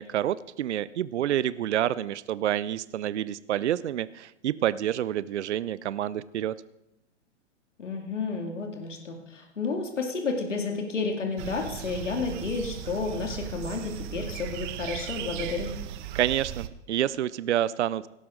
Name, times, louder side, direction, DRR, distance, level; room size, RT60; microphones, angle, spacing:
voice 1, 0.0-6.5 16.1-18.1, right 11 dB, 70° right, 18 dB, 0.6 m, -28 dB
voice 2, 7.8-15.7, left 4 dB, 85° left, 2 dB, 2.5 m, -31 dB
sound 1, 11.4-16.7, right 11 dB, 40° right, 0.9 m, -37 dB
17.5 x 12.5 x 3.8 m, 0.88 s
hypercardioid pair, 120°, 36 cm